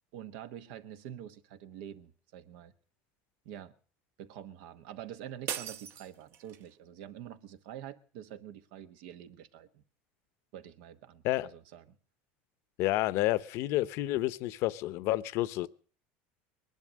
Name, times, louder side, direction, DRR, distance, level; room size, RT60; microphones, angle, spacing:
voice 1, 0.1-2.7 3.4-3.7 4.2-9.8 10.5-12.0, right 10 dB, 75° right, 1.2 m, -46 dB
sound 1, 5.5-6.7, right 9 dB, 50° right, 1.1 m, -39 dB
voice 2, 12.8-15.7, left 17 dB, 60° left, 0.7 m, -30 dB
20.0 x 11.0 x 6.3 m
supercardioid pair, 130°, 5 cm